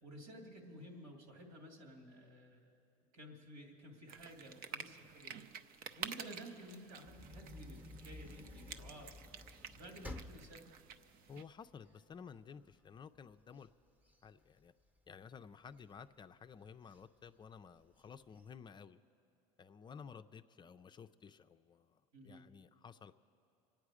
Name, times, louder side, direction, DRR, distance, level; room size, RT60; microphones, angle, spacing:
voice 1, 0.0-2.8 3.1-9.1 9.7-10.7 22.1-22.4, right 1 dB, 80° right, 2 dB, 2.6 m, -53 dB
sound 1, 4.1-11.4, right 7 dB, 55° right, 0.6 m, -50 dB
sound 2, 7.0-12.2 12.7-12.8 13.1-15.2 15.7-16.3 16.9-17.0 17.3-17.4 17.8-18.4, left 2 dB, 10° right, 0.9 m, -53 dB
voice 2, 11.3-13.7 14.2-14.7 15.1-19.0 19.6-23.1, left 6 dB, 25° left, 10 dB, 0.4 m, -54 dB
25.0 x 9.0 x 4.9 m, 2.7 s
supercardioid pair, 105°, 18 cm